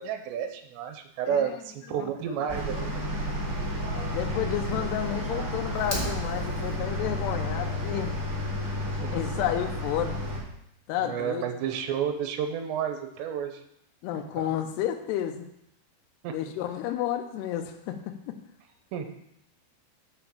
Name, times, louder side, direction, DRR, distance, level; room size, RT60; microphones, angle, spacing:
voice 1, 0.0-2.9 4.5-4.8 9.0-9.2 11.0-13.6 14.1-14.4 16.2-16.5 18.9-19.1, right 8 dB, 85° right, 6 dB, 2.9 m, -31 dB
voice 2, 1.3-1.6 1.9-2.1 2.7-3.0 4.1-8.1 9.1-10.2 10.9-11.5 14.0-15.5 16.3-18.4, left 11 dB, 80° left, 5 dB, 2.7 m, -31 dB
sound 1, 2.5-10.4, left 1 dB, 25° right, 2.3 m, -31 dB
Fire, 5.7-6.7, equal, 45° left, 0.4 m, -35 dB
7.0 x 6.0 x 7.1 m, 0.76 s
omnidirectional pair, 5.1 m